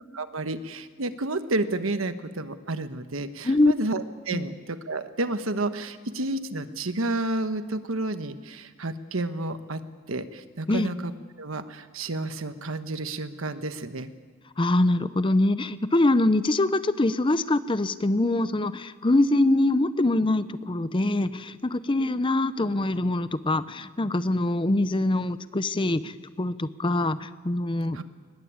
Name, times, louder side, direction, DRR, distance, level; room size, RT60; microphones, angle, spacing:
voice 1, 0.1-9.8 10.1-11.1 11.4-14.1 27.9-28.0, right 2 dB, 75° right, 10 dB, 1.2 m, -31 dB
voice 2, 14.6-28.0, left 2 dB, 25° left, 14 dB, 0.6 m, -24 dB
22.0 x 20.0 x 8.8 m, 1.5 s
head